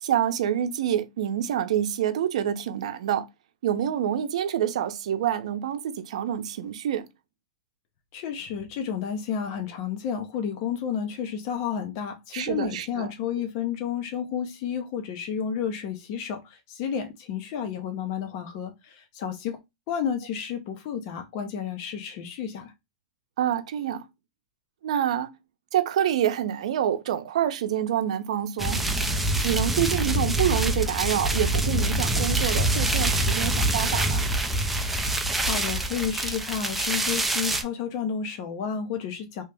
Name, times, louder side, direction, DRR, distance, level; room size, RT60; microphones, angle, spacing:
voice 1, 0.0-3.3 3.6-7.1 12.3-13.1 23.4-24.0 24.8-25.4 25.7-28.8 29.4-34.2 34.9-35.0, right 10 dB, 70° right, 0.7 m, -27 dB
voice 2, 8.1-19.6 19.9-22.7 35.4-39.4, left 8 dB, 40° left, 0.7 m, -31 dB
sound 1, 28.6-37.6, right 1 dB, 5° right, 0.5 m, -25 dB
3.0 x 2.9 x 3.4 m
supercardioid pair, 155°, 4 cm